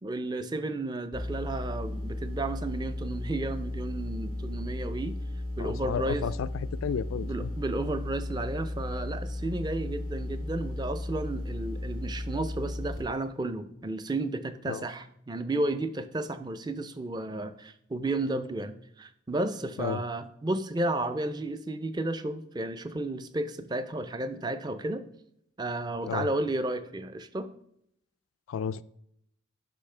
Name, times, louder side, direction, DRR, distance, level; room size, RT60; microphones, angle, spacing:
voice 1, 0.0-5.2 5.6-6.3 7.2-25.0 25.6-27.5, right 2 dB, 20° right, 10 dB, 0.4 m, -33 dB
sound 1, 1.1-13.0, left 1 dB, 45° right, 3.1 m, -35 dB
voice 2, 5.6-7.5 14.7-14.8 19.8-20.0 26.1-26.3 28.5-28.8, left 7 dB, 85° left, 17 dB, 0.3 m, -33 dB
10.0 x 5.9 x 3.3 m, 0.73 s
head